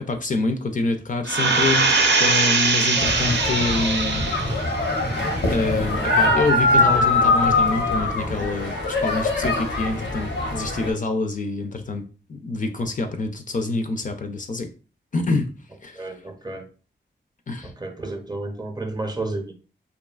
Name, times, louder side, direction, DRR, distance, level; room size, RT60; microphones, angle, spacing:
voice 1, 0.1-1.9 2.2-4.3 5.5-12.0 12.3-14.7 15.1-15.5 15.8-16.1 17.5-17.7, left 3 dB, 45° left, 5 dB, 0.4 m, -26 dB
sound 1, 1.3-4.7 5.1-5.2, right 3 dB, 70° right, 0.5 m, -21 dB
sound 2, 3.0-10.9, left 2 dB, 85° left, 0.8 m, -22 dB
voice 2, 15.9-16.6 17.6-19.5, right 2 dB, 20° right, 5 dB, 0.5 m, -31 dB
2.7 x 2.3 x 2.3 m, 0.37 s
wide cardioid pair, 70°, 19 cm